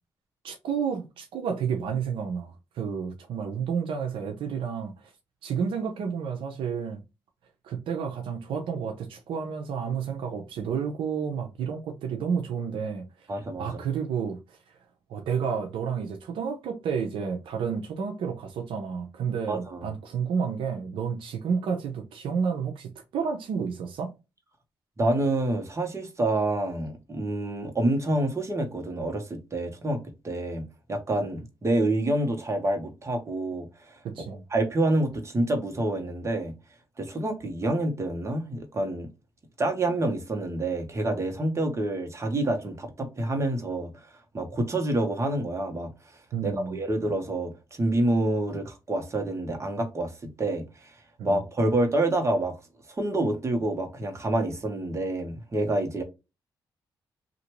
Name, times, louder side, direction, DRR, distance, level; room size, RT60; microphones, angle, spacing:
voice 1, 0.4-5.1 5.4-7.0 7.6-13.1 13.6-14.6 15.1-24.1 34.0-34.4 46.3-46.8 51.2-51.4, right 6 dB, 85° right, 0.6 m, -30 dB
voice 2, 13.3-13.7 19.5-19.9 25.0-34.0 34.5-36.5 37.0-39.1 39.6-43.9 44.3-45.9 46.4-50.1 50.4-50.9 51.2-52.5 52.9-56.0, right 1 dB, 35° right, 1.2 m, -27 dB
2.9 x 2.6 x 2.9 m
cardioid pair, 65°, 9 cm